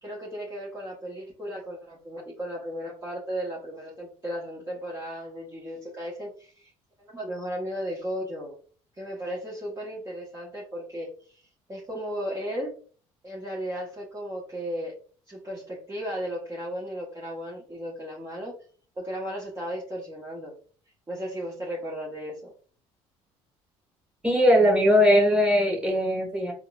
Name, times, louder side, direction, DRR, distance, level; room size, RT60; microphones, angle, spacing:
voice 1, 0.0-6.7 7.0-8.5 9.0-12.7 13.2-14.9 15.3-18.6 19.0-20.5 21.1-22.5, equal, 25° right, -5 dB, 1.1 m, -35 dB
voice 2, 24.2-26.5, equal, 10° right, 0 dB, 1.6 m, -20 dB
4.0 x 2.5 x 2.3 m, 0.42 s
supercardioid pair, 85°, 13 cm